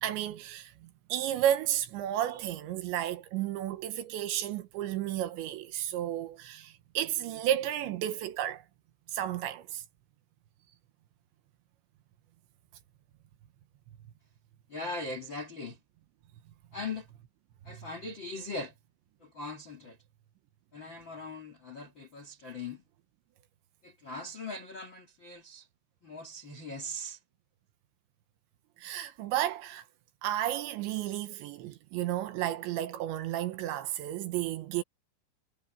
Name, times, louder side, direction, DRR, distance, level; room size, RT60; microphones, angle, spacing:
voice 1, 0.0-8.6 9.1-9.8 17.7-17.9 28.8-29.8 30.2-34.8, right 12 dB, 75° right, 3.1 m, -32 dB
voice 2, 14.7-15.8 16.7-17.1 17.6-18.8 19.2-20.0 20.7-22.8 23.8-25.7 26.0-27.2, left 2 dB, 75° left, 1.1 m, -40 dB
omnidirectional pair, 5.8 m